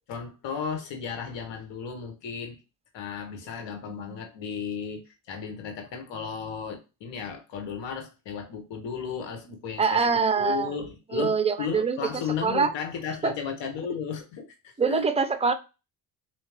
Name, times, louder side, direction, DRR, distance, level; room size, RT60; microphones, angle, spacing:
voice 1, 0.1-2.6 2.9-15.1, left 6 dB, 80° left, 5 dB, 1.4 m, -34 dB
voice 2, 3.9-4.2 9.8-10.8 11.1-12.7 13.2-13.3 14.8-15.5, right 5 dB, 15° right, 10 dB, 0.6 m, -25 dB
3.9 x 3.0 x 3.2 m, 0.28 s
supercardioid pair, 75°, 44 cm